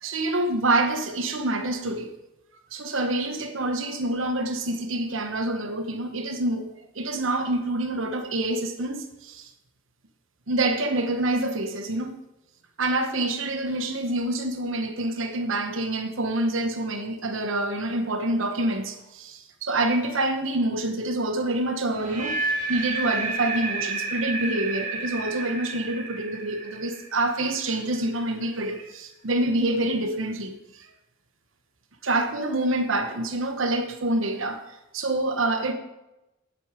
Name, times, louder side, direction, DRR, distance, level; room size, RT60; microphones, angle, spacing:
voice 1, 0.0-2.1 2.7-6.7 6.9-9.5 10.5-12.2 12.8-22.4 22.7-30.9 32.0-34.6 34.9-35.7, right 2 dB, 80° right, 1.1 m, -27 dB
sound 1, 21.9-27.9, right 3 dB, 40° right, 2.3 m, -31 dB
9.6 x 8.4 x 4.9 m
head